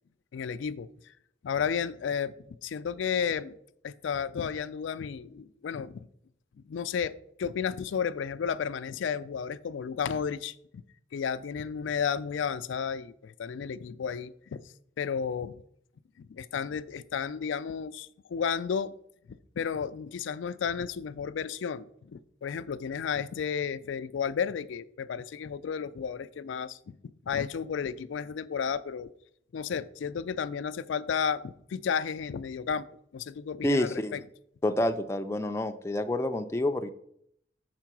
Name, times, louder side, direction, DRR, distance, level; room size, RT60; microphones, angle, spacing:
voice 1, 0.3-0.9 1.4-2.3 2.6-3.6 3.8-6.1 6.7-10.8 11.1-14.6 15.0-15.6 16.2-18.9 19.3-29.1 29.5-32.9 33.1-34.2, left 7 dB, 85° left, 13 dB, 0.4 m, -33 dB
voice 2, 33.6-34.2 34.6-36.9, left 1 dB, 15° left, 7 dB, 0.3 m, -28 dB
6.7 x 4.6 x 6.0 m, 0.70 s
head